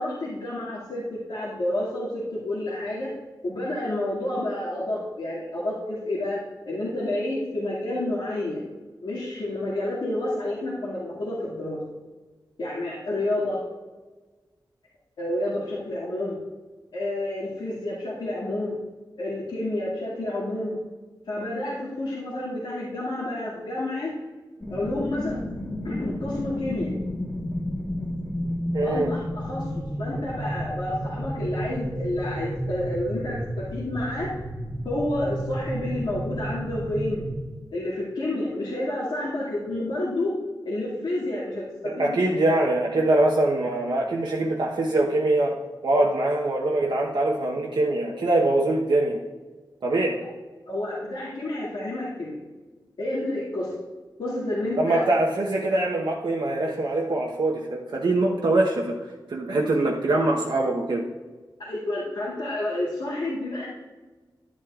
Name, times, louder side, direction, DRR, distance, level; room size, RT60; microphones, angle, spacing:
voice 1, 0.0-3.1 3.4-6.4 6.6-8.6 9.0-11.8 12.6-13.6 15.2-16.4 16.9-18.8 19.2-20.8 21.3-24.1 24.7-25.4 25.8-26.9 28.8-34.3 34.8-37.2 37.7-40.3 40.7-42.4 43.7-43.8 50.7-52.4 53.0-53.7 54.2-55.0 61.6-63.7, left 1 dB, 90° left, -9 dB, 2.2 m, -29 dB
sound 1, 24.6-37.4, equal, 20° left, 1.6 m, -32 dB
voice 2, 28.7-29.2 41.8-45.5 45.8-49.2 49.8-50.2 54.8-59.0 59.3-61.0, right 2 dB, 80° right, -3 dB, 1.0 m, -23 dB
11.0 x 11.0 x 2.4 m, 1.3 s
wide cardioid pair, 110°, 8 cm